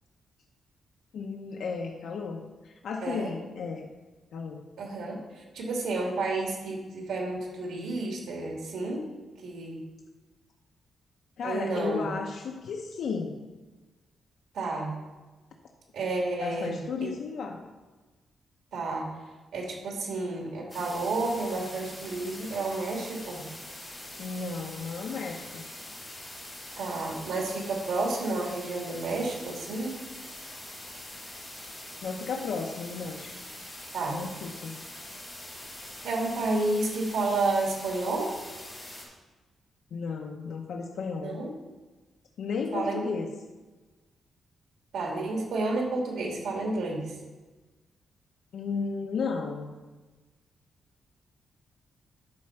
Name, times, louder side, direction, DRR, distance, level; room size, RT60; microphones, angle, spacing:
voice 1, 1.1-3.9 4.3-4.6 11.4-13.4 16.4-17.6 24.2-25.6 32.0-33.3 34.1-34.8 39.9-41.4 42.4-43.3 48.5-49.7, left 5 dB, 70° left, 1 dB, 0.7 m, -34 dB
voice 2, 4.8-5.2 5.5-9.0 9.4-9.8 11.4-12.1 14.5-14.9 15.9-16.7 17.0-17.1 18.7-19.1 19.5-23.4 26.8-29.9 33.9-34.2 36.0-38.3 41.2-41.5 42.7-43.0 44.9-47.1, right 2 dB, 90° right, -1 dB, 2.3 m, -30 dB
sound 1, 20.7-39.0, left 1 dB, 10° left, 2.9 m, -43 dB
11.0 x 4.3 x 5.8 m, 1.2 s
wide cardioid pair, 165°, 0 cm